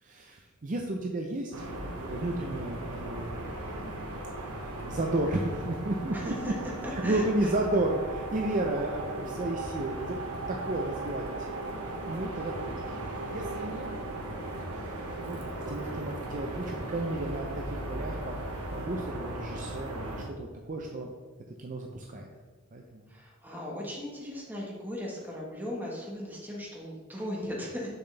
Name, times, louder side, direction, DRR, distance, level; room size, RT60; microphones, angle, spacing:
voice 1, 0.0-1.7 2.0-6.3 6.9-10.2 10.5-11.5 12.1-13.0 13.2-13.9 14.7-18.5 18.7-21.1 21.6-22.3 22.7-23.0, right 2 dB, 35° right, 1 dB, 0.5 m, -33 dB
sound 1, 1.5-20.2, right 2 dB, 85° right, 1.1 m, -37 dB
voice 2, 6.1-6.5 6.8-7.5 23.1-27.9, left 1 dB, 10° right, -4 dB, 1.3 m, -37 dB
6.8 x 6.0 x 3.3 m, 1.4 s
head